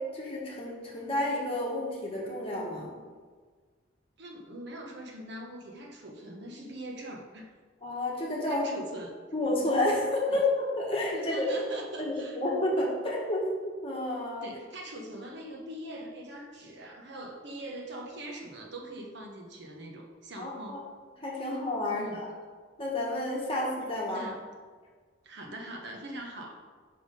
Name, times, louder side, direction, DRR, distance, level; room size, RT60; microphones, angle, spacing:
voice 1, 0.0-2.9 7.8-8.7 9.3-11.5 12.0-14.4 20.4-20.8 21.2-22.3 22.8-24.3, left 1 dB, 30° left, -3 dB, 1.5 m, -30 dB
voice 2, 4.2-7.5 8.5-9.1 10.3-10.4 11.1-12.4 14.4-20.8 21.9-22.2 24.1-24.3 25.2-26.5, right 1 dB, 60° right, 1 dB, 1.1 m, -42 dB
5.7 x 5.5 x 5.2 m, 1.5 s
head